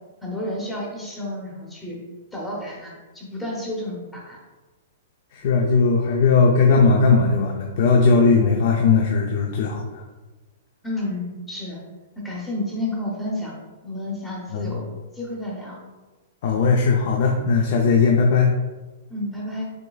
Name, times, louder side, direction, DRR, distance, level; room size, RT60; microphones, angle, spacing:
voice 1, 0.2-2.0 2.3-4.4 10.8-11.8 12.2-13.5 13.8-14.8 15.1-15.8 19.1-19.7, left 1 dB, 5° left, -3 dB, 0.8 m, -31 dB
voice 2, 5.3-10.0 14.5-14.8 16.4-18.5, left 4 dB, 45° left, 1 dB, 0.4 m, -18 dB
6.4 x 3.3 x 2.3 m, 1.2 s
hypercardioid pair, 175°, 0 cm